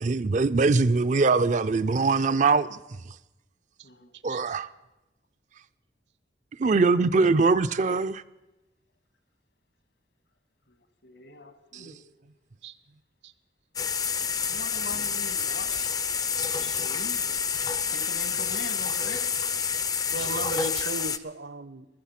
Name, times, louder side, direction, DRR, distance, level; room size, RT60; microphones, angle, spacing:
voice 1, 0.0-2.8 3.1-3.2 4.2-4.7 6.6-8.2 11.7-11.9, right 4 dB, 40° right, 0.4 m, -22 dB
voice 2, 11.0-12.0 14.5-19.3, left 2 dB, 75° left, 1.8 m, -43 dB
sound 1, 13.8-21.2, left 6 dB, 20° left, 0.4 m, -28 dB
voice 3, 20.1-21.9, right 3 dB, 70° right, 0.8 m, -36 dB
15.5 x 13.5 x 5.8 m
head